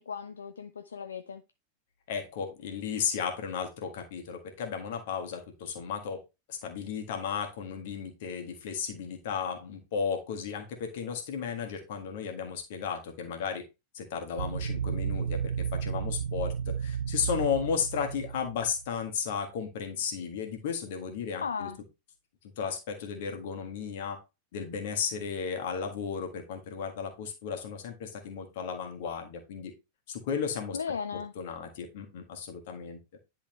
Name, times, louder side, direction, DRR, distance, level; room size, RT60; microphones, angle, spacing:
voice 1, 0.0-1.4 21.4-21.8 30.7-31.3, left 6 dB, 70° left, 0.4 m, -36 dB
voice 2, 2.1-6.2 6.5-13.6 13.9-21.7 22.6-24.2 24.5-29.7 30.1-30.8 31.3-33.0, left 6 dB, 55° left, 1.6 m, -34 dB
sound 1, 14.4-19.0, right 7 dB, 70° right, 0.5 m, -33 dB
10.0 x 3.7 x 3.2 m
figure-of-eight pair, 90°, 0 cm